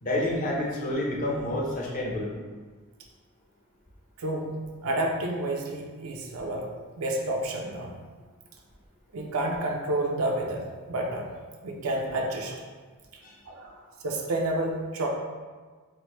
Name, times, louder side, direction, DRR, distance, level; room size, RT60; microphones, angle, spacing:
voice 1, 0.0-2.3 13.2-13.4, left 1 dB, 40° left, -3 dB, 0.7 m, -29 dB
voice 2, 4.2-4.6 4.8-6.7 7.0-7.9 9.1-11.3 11.6-12.6 13.5-13.7 14.0-15.1, right 1 dB, 80° right, 0 dB, 0.5 m, -30 dB
4.5 x 2.1 x 3.1 m, 1.4 s
head